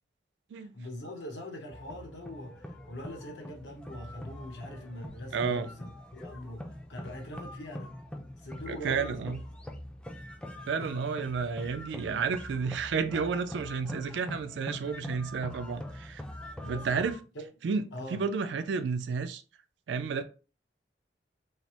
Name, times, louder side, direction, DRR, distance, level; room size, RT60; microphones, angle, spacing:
voice 1, 0.5-7.9 8.4-9.4 16.6-17.0 17.3-17.5 17.9-18.2, left 1 dB, 85° left, 0.8 m, -42 dB
sound 1, 1.7-17.2, left 1 dB, 5° left, 0.3 m, -43 dB
voice 2, 5.3-5.7 8.7-9.4 10.7-16.2 16.7-17.2 17.6-17.8 18.1-19.4 19.9-20.2, right 5 dB, 90° right, 0.4 m, -31 dB
3.1 x 2.0 x 2.8 m
head